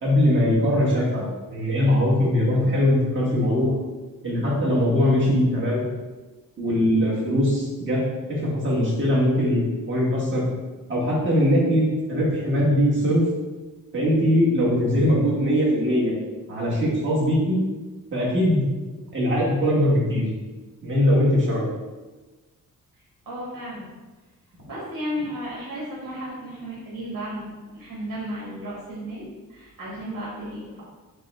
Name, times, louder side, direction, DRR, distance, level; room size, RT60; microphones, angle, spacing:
voice 1, 0.0-3.7 4.2-5.8 6.6-8.0 8.3-10.4 10.9-13.2 13.9-16.1 16.5-17.6 18.1-18.7 19.1-20.2 20.8-21.6, equal, 35° right, -6 dB, 1.3 m, -21 dB
voice 2, 22.9-23.9 24.7-30.8, equal, 75° right, -6 dB, 1.4 m, -34 dB
5.4 x 2.2 x 4.1 m, 1.2 s
wide cardioid pair, 170°, 34 cm